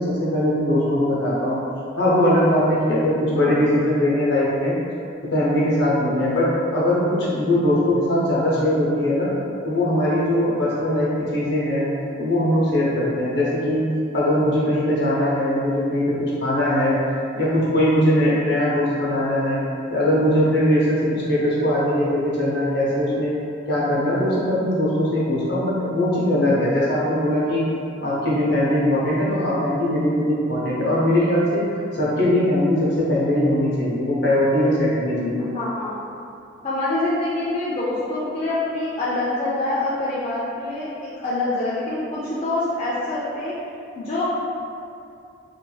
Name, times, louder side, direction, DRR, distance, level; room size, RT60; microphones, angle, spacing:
voice 1, 0.0-1.6 2.0-4.8 5.3-9.3 9.6-11.9 12.2-13.9 14.1-17.0 17.3-19.6 19.9-23.3 23.7-27.7 28.0-31.6 31.9-35.5, left 1 dB, 55° left, -6 dB, 0.7 m, -20 dB
voice 2, 35.5-36.0 36.6-40.9 41.2-43.5 44.0-44.3, left 2 dB, 30° left, -9 dB, 0.3 m, -25 dB
3.1 x 2.6 x 2.2 m, 2.6 s
head